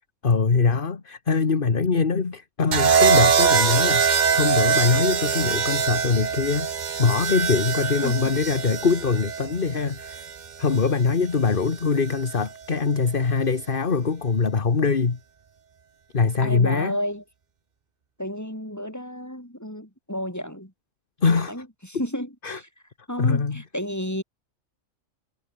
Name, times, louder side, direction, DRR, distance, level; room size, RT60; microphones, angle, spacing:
voice 1, 0.2-6.7 7.0-10.2 10.6-15.2 16.1-17.0 21.2-21.5 22.4-22.6 23.2-23.6, left 5 dB, 40° left, 1.7 m, -23 dB
sound 1, 2.7-10.8 12.1-12.4, right 6 dB, 40° right, 0.9 m, -23 dB
voice 2, 16.4-17.2 18.2-20.7 21.3-22.7 23.1-24.2, equal, 10° left, 7.7 m, -32 dB
omnidirectional pair, 1.4 m